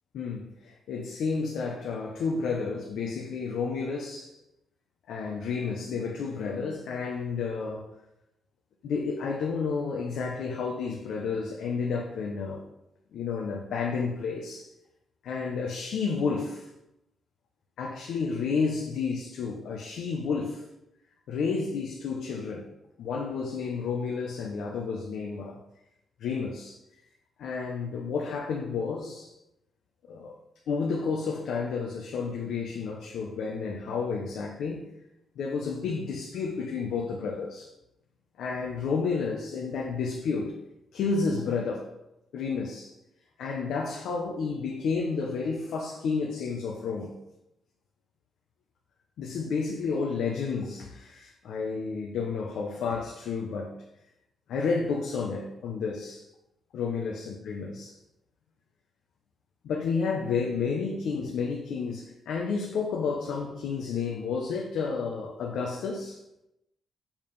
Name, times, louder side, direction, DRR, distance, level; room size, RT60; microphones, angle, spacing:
voice 1, 0.1-4.4 5.1-7.8 8.8-12.6 13.1-14.7 15.2-16.7 17.8-20.6 21.3-22.7 23.0-25.6 26.2-26.8 27.4-29.3 30.1-30.4 30.7-34.9 35.4-37.7 38.4-40.5 40.9-41.9 42.3-42.9 43.4-47.1 49.2-53.8 54.5-56.3 56.7-58.0 59.6-66.2, left 5 dB, 80° left, 1.0 m, -31 dB
7.2 x 4.9 x 5.5 m
wide cardioid pair, 155°, 0 cm